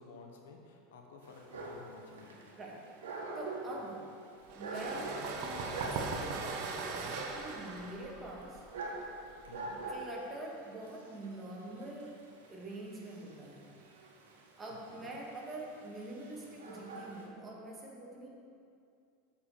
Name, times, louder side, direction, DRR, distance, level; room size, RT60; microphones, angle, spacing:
voice 1, 0.0-2.4 5.6-5.9 9.5-9.8 14.9-15.1, left 4 dB, 85° left, 2 dB, 1.2 m, -53 dB
Dog, 1.2-17.3, right 2 dB, 90° right, 1.4 m, -45 dB
voice 2, 3.4-4.1 4.5-8.6 9.9-13.7 14.6-18.3, right 2 dB, 20° right, -3 dB, 2.0 m, -45 dB
sound 1, 4.5-10.0, right 4 dB, 60° right, 1.1 m, -40 dB
7.7 x 5.6 x 6.6 m, 2.4 s
supercardioid pair, 115°, 0 cm